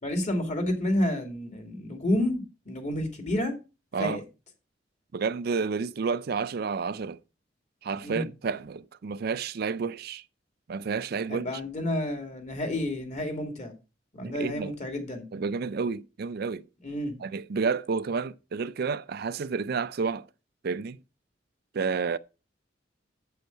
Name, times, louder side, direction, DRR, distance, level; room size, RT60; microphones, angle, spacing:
voice 1, 0.0-3.5 4.0-4.2 8.0-8.3 11.3-13.7 14.1-15.3 16.8-17.1, left 1 dB, 40° left, 2.5 m, -30 dB
voice 2, 5.1-7.2 7.8-10.2 10.7-11.5 14.2-14.7 15.3-16.6 17.2-20.3 20.6-21.0 21.7-22.2, right 5 dB, 55° right, 0.4 m, -30 dB
8.3 x 7.9 x 4.5 m
head